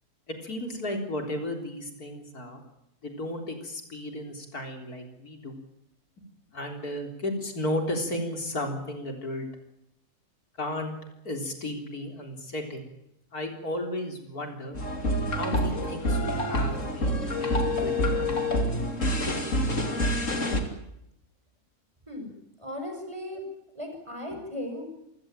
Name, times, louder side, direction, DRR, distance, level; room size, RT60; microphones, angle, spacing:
voice 1, 0.3-2.6 3.0-5.6 6.5-9.5 10.6-10.9 11.2-12.9 13.3-14.8 15.4-18.3 24.8-24.9, left 1 dB, 75° left, 4 dB, 4.3 m, -34 dB
sound 1, 14.7-20.6, left 1 dB, 55° left, 3.2 m, -27 dB
voice 2, 22.6-23.4 23.7-24.9, left 1 dB, 20° right, 4 dB, 6.3 m, -36 dB
27.5 x 16.5 x 9.0 m, 0.82 s
omnidirectional pair, 1.6 m